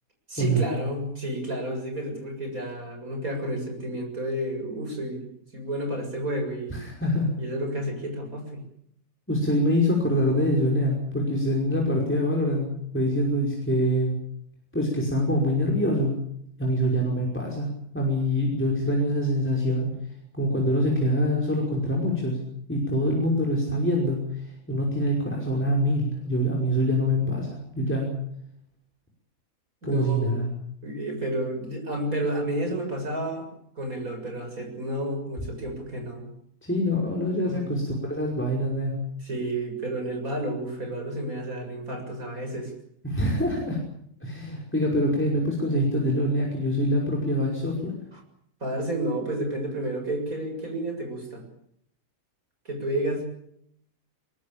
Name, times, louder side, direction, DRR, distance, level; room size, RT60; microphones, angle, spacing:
voice 1, 0.3-6.8 7.4-8.6 29.8-30.3 30.8-33.5 33.8-36.3 37.4-37.6 39.2-42.7 48.1-48.2 48.6-51.4 52.7-53.2, right 1 dB, 65° right, 3 dB, 7.4 m, -31 dB
voice 2, 6.7-7.3 9.3-14.1 14.7-16.2 16.6-17.7 17.9-19.9 20.3-22.4 22.7-28.2 29.8-30.5 36.6-39.0 43.0-43.8 44.2-47.9, equal, 5° left, -2 dB, 5.7 m, -25 dB
22.5 x 22.0 x 8.8 m, 0.71 s
omnidirectional pair, 1.6 m